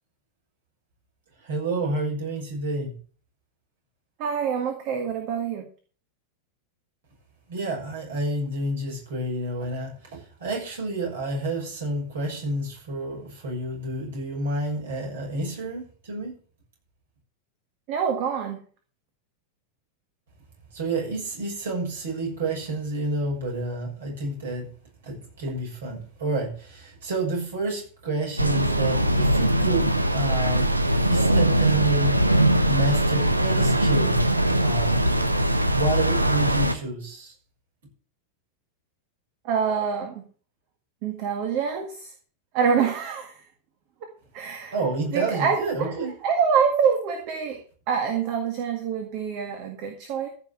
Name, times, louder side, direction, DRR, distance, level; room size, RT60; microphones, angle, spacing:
voice 1, 1.4-2.9 7.5-16.4 20.7-24.7 25.0-30.7 31.0-32.2 32.6-34.2 34.6-35.0 35.7-37.3 44.7-46.1, right 2 dB, 60° right, 0 dB, 6.8 m, -29 dB
voice 2, 4.2-5.7 17.9-18.6 39.4-40.2 41.0-42.1 42.5-43.4 44.3-44.7 45.1-47.6 47.9-50.3, right 6 dB, 45° right, 5 dB, 1.9 m, -26 dB
sound 1, 28.4-36.7, right 1 dB, 85° right, 1.0 m, -21 dB
14.5 x 5.7 x 7.5 m, 0.43 s
figure-of-eight pair, 90°, 0 cm